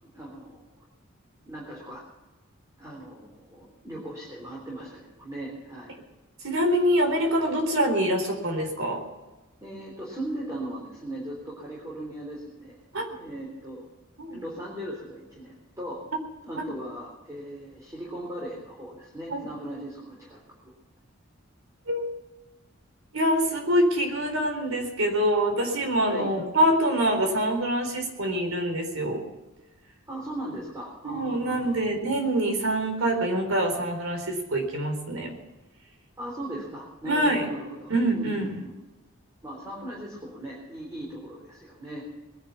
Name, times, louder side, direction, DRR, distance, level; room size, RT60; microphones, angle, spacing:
voice 1, 0.1-0.8 1.5-2.0 2.8-6.0 9.6-12.8 13.1-13.8 14.3-16.0 16.4-20.7 26.0-26.3 30.1-31.8 36.2-38.7 39.4-42.1, right 1 dB, 15° right, -4 dB, 3.5 m, -38 dB
voice 2, 6.4-9.0 12.9-13.1 14.2-14.4 19.3-19.5 21.9-22.1 23.1-29.2 31.0-35.3 37.0-37.5 37.9-38.6, right 1 dB, 75° right, 4 dB, 3.9 m, -25 dB
21.0 x 10.5 x 5.9 m, 1.1 s
head